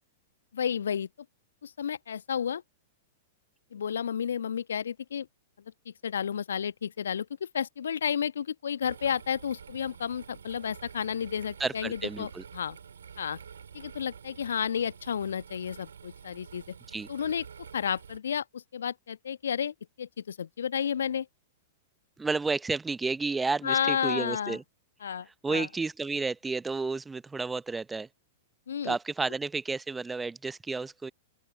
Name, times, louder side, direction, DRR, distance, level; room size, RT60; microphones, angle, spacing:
voice 1, 0.5-1.1 1.6-2.6 3.7-5.3 5.9-12.8 13.2-13.4 13.7-16.7 17.1-17.4 17.7-21.3 23.6-24.6 25.0-25.7 28.7-28.9, left 8 dB, 70° left, 1.2 m, -32 dB
sound 1, 8.8-18.2, right 7 dB, 70° right, 5.1 m, -48 dB
voice 2, 11.6-12.4 16.9-17.1 22.2-24.6 25.4-28.1 28.8-31.1, right 4 dB, 10° right, 0.6 m, -31 dB
open air
figure-of-eight pair, 100°, 0 cm